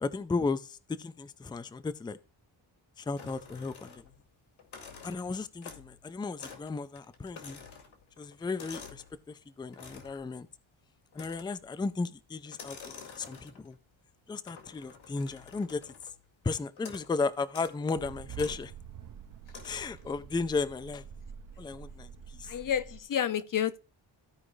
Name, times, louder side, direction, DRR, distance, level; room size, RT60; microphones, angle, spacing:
voice 1, 0.0-2.2 3.0-4.0 5.0-7.6 8.2-10.5 11.1-13.8 14.3-15.9 16.4-18.7 19.6-21.0 21.6-22.5, left 4 dB, 10° left, 0.3 m, -35 dB
sound 1, 3.2-4.2 4.6-6.0 6.4-6.7 7.0-9.1 9.7-10.2 11.1-11.7 12.5-13.8 14.5-16.2 16.8-17.1 17.5-17.8 18.3-18.6 19.5-20.1, left 5 dB, 80° left, 2.2 m, -49 dB
sound 2, 18.0-23.0, right 7 dB, 45° right, 0.6 m, -47 dB
voice 2, 22.4-23.8, left 9 dB, 45° left, 0.6 m, -30 dB
14.5 x 4.9 x 3.2 m
wide cardioid pair, 170°, 46 cm